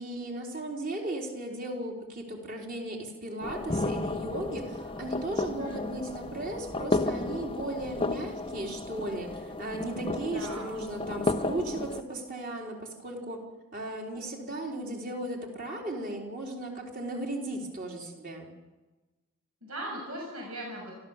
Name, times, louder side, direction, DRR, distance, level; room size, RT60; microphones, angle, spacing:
voice 1, 0.0-13.4 13.7-18.5, right 1 dB, 40° right, 0 dB, 4.0 m, -36 dB
sound 1, 3.4-12.0, left 2 dB, 25° left, 0.8 m, -33 dB
voice 2, 10.3-10.7 19.6-20.9, right 1 dB, 80° right, -2 dB, 6.5 m, -39 dB
28.0 x 13.5 x 7.4 m, 1.2 s
head